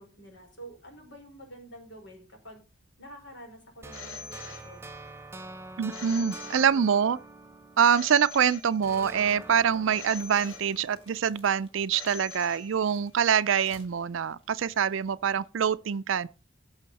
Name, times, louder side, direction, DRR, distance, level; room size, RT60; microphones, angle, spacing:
voice 1, 0.0-2.6 3.0-4.9, right 1 dB, 60° left, 4.8 m, -48 dB
sound 1, 3.8-8.4 8.8-11.9, right 2 dB, 15° right, 0.5 m, -46 dB
Telephone, 3.9-5.2 5.9-7.2 7.9-9.2 9.9-11.2 11.9-13.2, left 5 dB, 80° left, 2.4 m, -44 dB
voice 2, 5.8-7.2 7.8-16.3, right 7 dB, 70° right, 0.4 m, -25 dB
sound 2, 9.2-15.3, left 1 dB, 30° left, 3.2 m, -60 dB
16.0 x 6.4 x 4.1 m
head